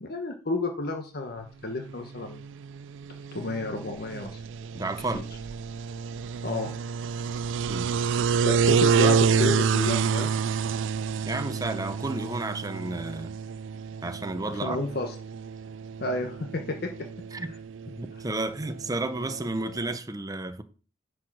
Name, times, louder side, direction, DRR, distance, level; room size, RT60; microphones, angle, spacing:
voice 1, 0.0-2.4 3.3-4.3 5.1-5.2 6.4-6.7 8.4-10.3 14.6-15.1 16.0-17.1, left 2 dB, 55° left, 1.1 m, -31 dB
sound 1, 1.9-20.0, right 6 dB, 70° right, 0.3 m, -29 dB
voice 2, 4.7-5.2 7.7-7.9 11.2-13.4 14.0-14.8 17.3-17.5 17.9-20.6, right 2 dB, 20° right, 0.8 m, -32 dB
10.5 x 4.7 x 6.0 m
head